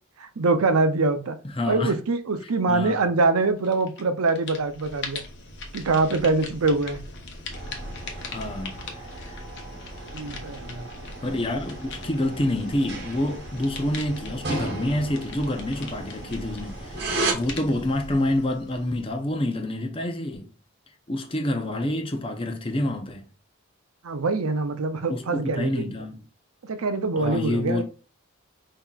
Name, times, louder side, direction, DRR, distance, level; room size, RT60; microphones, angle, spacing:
voice 1, 0.2-1.4 1.6-5.2 5.7-7.0 10.1-10.8 24.0-25.9 26.6-27.8, right 3 dB, 85° right, 0.6 m, -24 dB
voice 2, 1.5-1.9 2.7-3.1 8.3-9.4 11.2-17.1 17.3-20.5 21.1-23.2 25.1-26.2 27.2-27.8, left 1 dB, 25° left, 0.6 m, -27 dB
sound 1, 3.6-4.0 4.3-19.3, left 2 dB, 55° left, 0.9 m, -40 dB
sound 2, 7.5-17.3, right 2 dB, 50° right, 1.1 m, -35 dB
5.6 x 2.8 x 2.4 m
head